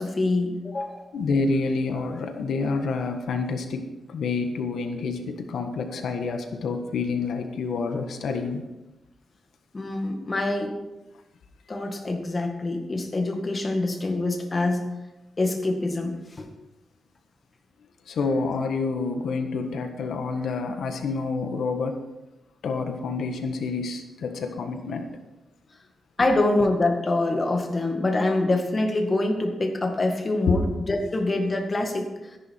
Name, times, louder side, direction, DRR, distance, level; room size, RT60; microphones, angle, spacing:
voice 1, 0.0-1.1 9.7-10.8 11.7-14.9 15.4-16.5 26.2-32.1, left 2 dB, 30° left, 3 dB, 2.0 m, -25 dB
voice 2, 1.1-8.6 18.1-22.0 22.6-25.1 30.5-30.6, left 4 dB, 80° left, 5 dB, 1.5 m, -28 dB
14.0 x 11.0 x 4.6 m, 1.0 s
wide cardioid pair, 130°, 0 cm